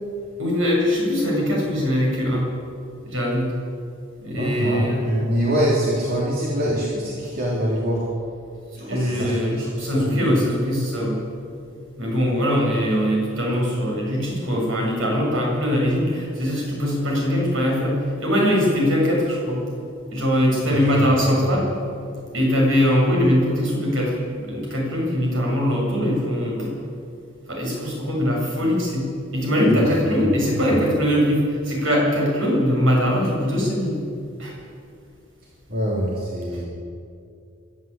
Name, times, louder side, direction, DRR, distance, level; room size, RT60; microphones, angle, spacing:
voice 1, 0.4-2.5 3.0-3.5 4.2-5.1 8.8-11.2 12.0-19.6 20.1-21.7 22.3-26.7 27.5-34.0 34.4-34.6, equal, 70° right, -2 dB, 7.5 m, -21 dB
voice 2, 4.4-8.1 8.8-9.7 9.9-10.4 20.7-21.4 29.7-29.8 30.1-30.3 30.7-30.8 35.7-36.6, equal, 50° right, -5 dB, 3.6 m, -24 dB
23.5 x 12.5 x 9.0 m, 2.4 s
head